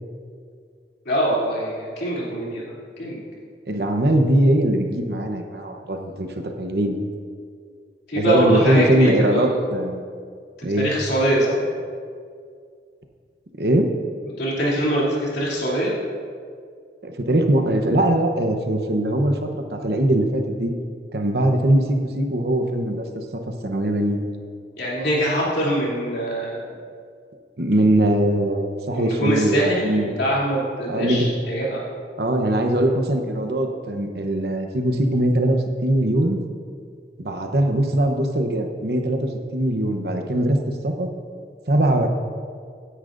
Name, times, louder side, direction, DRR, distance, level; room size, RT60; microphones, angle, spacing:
voice 1, 1.0-3.2 8.1-9.6 10.7-11.6 14.4-15.9 24.8-26.6 28.9-31.8, right 1 dB, 80° left, -6 dB, 3.0 m, -23 dB
voice 2, 3.7-6.3 6.6-7.0 8.2-10.0 10.6-10.9 13.6-13.9 17.0-20.7 21.1-23.2 23.6-24.3 27.6-30.1 30.9-31.3 32.2-36.4 37.2-39.2 39.5-41.1 41.7-42.1, right 1 dB, 65° right, 4 dB, 0.9 m, -21 dB
16.5 x 9.9 x 2.6 m, 2.2 s
head